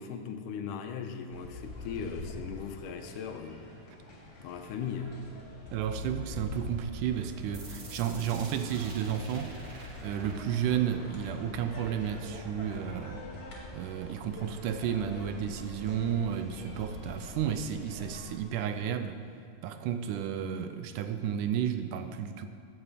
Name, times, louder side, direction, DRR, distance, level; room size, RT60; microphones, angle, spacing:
voice 1, 0.0-3.6 4.4-5.2, left 7 dB, 80° left, 6 dB, 2.3 m, -38 dB
sound 1, 1.3-18.2, left 2 dB, 40° left, 2.7 m, -44 dB
voice 2, 5.7-9.6 10.0-13.2 13.7-19.2 19.6-22.5, right 9 dB, 80° right, 9 dB, 2.1 m, -32 dB
sound 2, 7.5-13.5, right 3 dB, 55° right, 0.9 m, -51 dB
15.5 x 9.8 x 5.1 m, 2.2 s
omnidirectional pair, 3.8 m